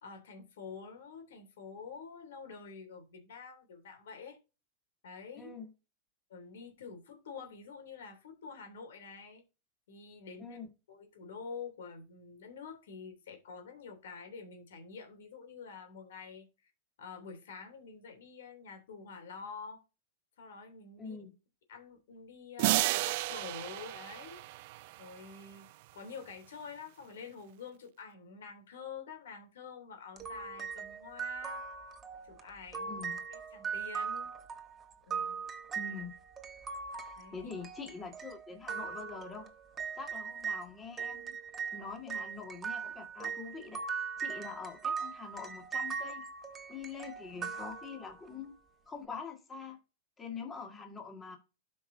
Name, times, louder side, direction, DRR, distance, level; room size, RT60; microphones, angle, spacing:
voice 1, 0.0-4.4 5.0-5.5 6.3-9.4 9.9-10.6 10.9-16.7 17.0-19.8 20.4-21.2 21.7-24.4 25.0-25.7 25.9-31.6 32.2-33.0 33.3-34.3 35.1-35.4 37.2-37.5, left 5 dB, 80° left, 3.0 m, -47 dB
voice 2, 5.4-5.7 10.4-10.7 21.0-21.3 32.9-33.2 35.8-36.1 37.3-39.5 40.0-41.4 41.7-43.8 44.2-46.2 46.7-48.5 48.9-49.8 50.2-51.4, left 5 dB, 15° left, 1.9 m, -44 dB
sound 1, 22.6-25.4, right 19 dB, 55° right, 0.4 m, -32 dB
sound 2, 30.2-40.6 41.0-48.3, right 6 dB, 20° right, 1.2 m, -40 dB
12.5 x 5.4 x 2.7 m
supercardioid pair, 140°, 0 cm